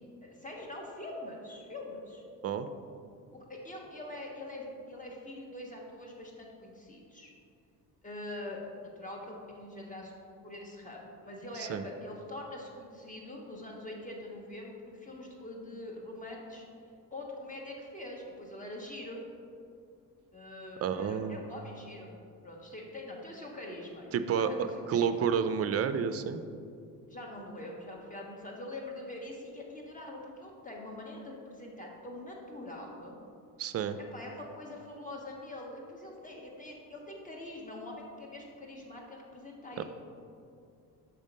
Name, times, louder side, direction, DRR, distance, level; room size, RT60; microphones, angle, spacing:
voice 1, 0.2-2.2 3.3-7.3 8.0-10.1 10.4-16.7 17.1-19.2 20.3-25.1 27.1-33.2 34.1-39.8, left 1 dB, 20° left, -1 dB, 1.2 m, -44 dB
voice 2, 20.8-21.4 24.1-26.4 33.6-34.0 39.8-39.9, right 7 dB, 40° right, 11 dB, 0.4 m, -30 dB
5.8 x 3.6 x 5.3 m, 2.5 s
cardioid pair, 80°, 38 cm